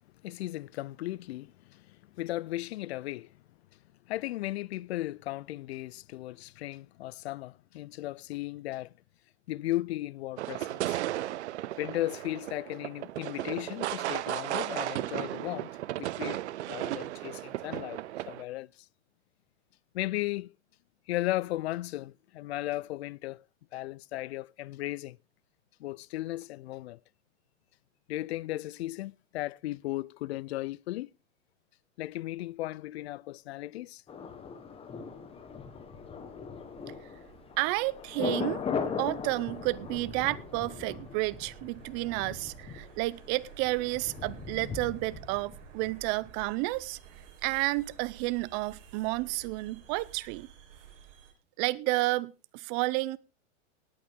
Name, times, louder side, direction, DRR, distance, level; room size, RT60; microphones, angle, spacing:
voice 1, 0.2-3.3 4.1-8.9 9.5-11.0 11.8-18.0 18.3-18.7 19.9-20.5 21.1-23.4 23.7-25.2 25.8-27.0 28.1-31.1 32.0-34.0, left 16 dB, 60° left, 0.5 m, -36 dB
Firework New Years Eve, 10.4-18.4, right 14 dB, 65° right, 0.8 m, -35 dB
Thunder, 34.1-45.9 46.2-46.3, left 6 dB, 15° left, 1.3 m, -39 dB
sound 1, 34.6-51.3, right 8 dB, 45° right, 4.2 m, -53 dB
voice 2, 37.6-38.6 38.9-47.0 47.4-50.5 51.6-53.2, right 21 dB, 30° right, 0.5 m, -31 dB
18.5 x 8.9 x 3.6 m
hypercardioid pair, 140°, 36 cm